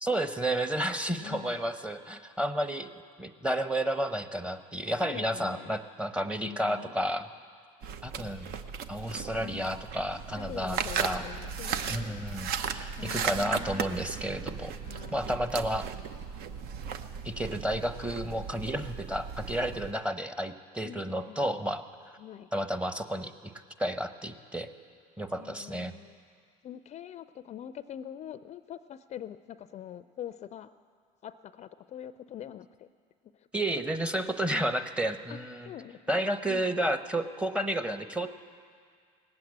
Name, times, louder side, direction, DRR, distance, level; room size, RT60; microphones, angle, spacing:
voice 1, 0.0-2.9 3.2-7.3 8.0-8.5 8.9-11.2 11.9-14.7 15.1-15.9 17.2-21.8 22.5-23.5 23.8-24.7 25.2-25.9 33.5-35.7 36.1-38.3, right 1 dB, 5° right, 9 dB, 0.8 m, -31 dB
voice 2, 1.1-1.6 5.0-5.8 6.4-6.9 9.4-9.9 10.3-12.2 12.9-13.8 14.8-15.4 20.8-21.6 22.2-22.5 25.4-26.2 26.6-30.7 31.2-32.9 33.4-33.5 35.3-35.4 35.7-36.2 36.5-36.8, left 10 dB, 40° left, 13 dB, 0.4 m, -44 dB
sound 1, 7.8-19.9, right 7 dB, 65° right, 0.8 m, -36 dB
18.5 x 7.9 x 8.7 m, 2.1 s
supercardioid pair, 80°, 17 cm